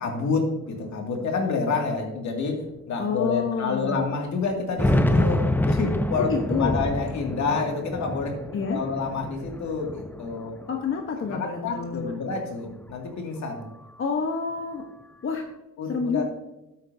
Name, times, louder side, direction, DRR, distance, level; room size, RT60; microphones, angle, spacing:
voice 1, 0.0-8.4 8.7-10.6 11.3-13.6 15.8-16.2, left 4 dB, 65° left, 2 dB, 2.3 m, -28 dB
sound 1, 0.9-1.0 1.2-1.3 2.1-2.2 2.7-2.8 4.4-10.8 11.2-12.2, left 1 dB, 5° left, 0.7 m, -27 dB
voice 2, 3.0-4.0 6.2-6.8 8.5-8.8 10.7-12.1 14.0-14.8 15.2-15.4 15.8-16.2, left 5 dB, 45° left, 3 dB, 1.1 m, -28 dB
13.0 x 8.3 x 2.7 m, 0.94 s
cardioid pair, 90°, 30 cm